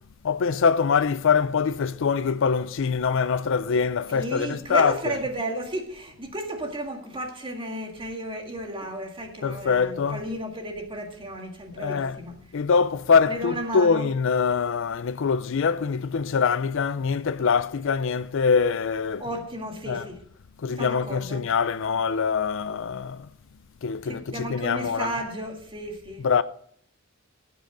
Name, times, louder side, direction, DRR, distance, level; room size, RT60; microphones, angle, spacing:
voice 1, 0.2-5.2 9.4-10.3 11.8-12.2 12.5-19.4 19.8-20.1 20.6-23.3 23.8-25.1 26.2-26.4, left 5 dB, 65° left, 0.4 m, -24 dB
voice 2, 4.1-12.4 13.3-14.1 19.2-20.2 20.7-21.5 24.0-26.3, right 1 dB, 25° right, 1.9 m, -33 dB
17.0 x 7.7 x 3.9 m
head